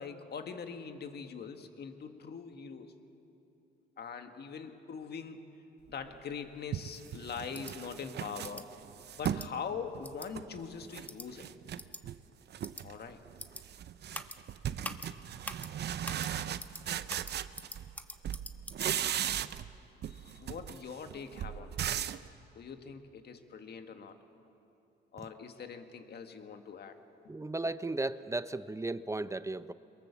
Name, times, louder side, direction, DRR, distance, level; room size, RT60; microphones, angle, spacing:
voice 1, 0.0-2.9 4.0-5.4 5.9-8.7 9.1-11.5 12.8-13.2 20.1-22.1 22.5-24.2 25.1-27.0, left 6 dB, 55° left, 6 dB, 1.8 m, -43 dB
sound 1, 6.1-6.2 6.7-9.5 9.9-11.1 11.4-12.2 12.5-13.0 13.3-18.0 18.2-19.8 20.0-22.3, right 10 dB, 60° right, 0.7 m, -37 dB
sound 2, 7.5-7.7 8.4-8.6 9.2-9.5 10.0-10.3 11.1-11.3 11.8-12.0 12.6-12.8 13.4-13.6 14.1-14.4 14.8-15.1 15.4-15.7 16.0-16.3 16.6-16.8 17.1-19.2, left 1 dB, 10° left, 1.1 m, -43 dB
voice 2, 27.3-29.7, right 2 dB, 15° right, 14 dB, 0.6 m, -35 dB
22.5 x 22.5 x 7.3 m, 2.8 s
cardioid pair, 90°, 20 cm